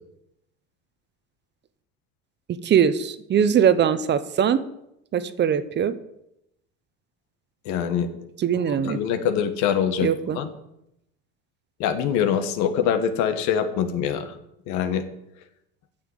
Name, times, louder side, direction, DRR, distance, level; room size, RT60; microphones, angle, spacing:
voice 1, 2.6-4.6 5.1-6.0 8.4-9.0 10.0-10.4, right 8 dB, 35° right, 14 dB, 0.8 m, -21 dB
voice 2, 7.6-8.1 8.7-10.5 11.8-14.3 14.7-15.0, left 8 dB, 70° left, 9 dB, 1.5 m, -24 dB
9.2 x 6.8 x 7.9 m, 0.82 s
supercardioid pair, 110°, 29 cm